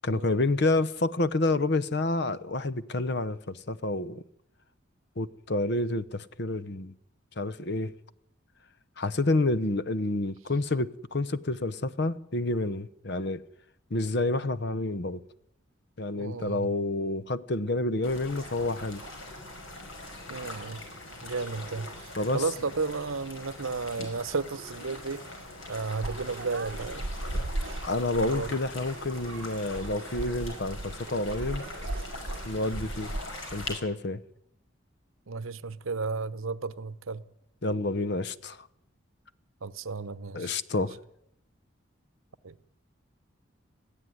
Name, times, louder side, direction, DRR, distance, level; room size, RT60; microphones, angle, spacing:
voice 1, 0.0-4.2 5.2-6.9 7.4-7.9 9.0-13.4 13.9-15.2 16.0-19.0 22.2-22.4 24.0-24.1 27.8-31.6 32.4-33.1 33.5-34.2 37.6-38.7 40.3-41.0, left 2 dB, 55° left, 0.8 m, -29 dB
voice 2, 16.2-16.7 20.3-20.8 21.2-25.2 25.7-27.0 27.3-27.7 28.1-28.5 35.3-37.2 39.6-40.6 42.4-42.6, right 4 dB, 85° right, 0.9 m, -33 dB
sound 1, 18.0-33.7, left 2 dB, 75° left, 5.6 m, -42 dB
sound 2, 26.0-33.2, right 1 dB, 65° right, 1.1 m, -37 dB
21.0 x 15.5 x 9.3 m
head